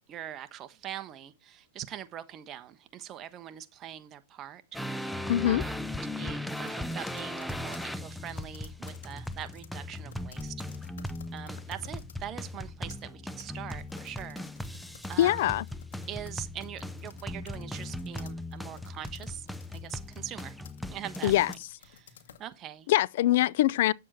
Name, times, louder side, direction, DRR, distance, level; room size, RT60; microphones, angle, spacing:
voice 1, 0.1-4.6 5.0-10.6 11.3-15.5 16.1-20.6 20.9-21.6 21.9-22.9, right 11 dB, 30° right, 1.2 m, -43 dB
sound 1, 4.7-5.0 5.6-12.2 12.6-22.5, left 8 dB, 80° left, 1.8 m, -55 dB
sound 2, 4.7-21.5, left 1 dB, ahead, 0.7 m, -38 dB
voice 2, 5.3-5.6 15.2-15.6 21.2-21.5 22.9-23.9, left 14 dB, 65° left, 0.4 m, -23 dB
9.2 x 7.5 x 4.2 m
hypercardioid pair, 130°, 0 cm